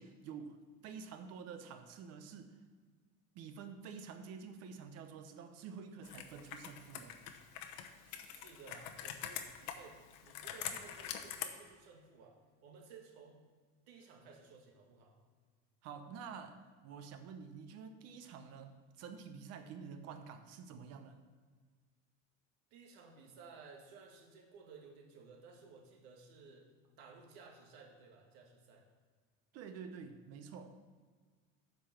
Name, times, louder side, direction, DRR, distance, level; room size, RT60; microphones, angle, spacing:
voice 1, 0.0-2.6 3.3-7.1 15.8-21.2 29.5-30.8, right 6 dB, 50° right, 8 dB, 0.8 m, -49 dB
Computer keyboard, 6.0-11.5, left 9 dB, 60° left, 0.9 m, -45 dB
voice 2, 8.1-13.4 13.9-15.2 22.7-26.7 27.0-28.9, right 4 dB, 75° right, 2 dB, 1.8 m, -57 dB
7.6 x 5.4 x 7.1 m, 1.5 s
cardioid pair, 140°, 32 cm